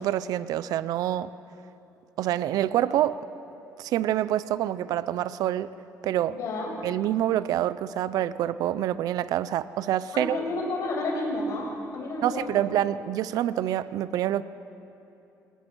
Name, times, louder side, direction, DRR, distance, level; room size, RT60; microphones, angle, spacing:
voice 1, 0.0-1.3 2.2-3.2 3.8-5.7 6.0-6.4 6.8-10.4 12.2-14.4, right 12 dB, 80° right, 0.7 m, -26 dB
voice 2, 6.3-6.7 10.1-12.6, left 2 dB, 60° left, 6.8 m, -31 dB
27.5 x 27.5 x 6.4 m
cardioid pair, 140°, 6 cm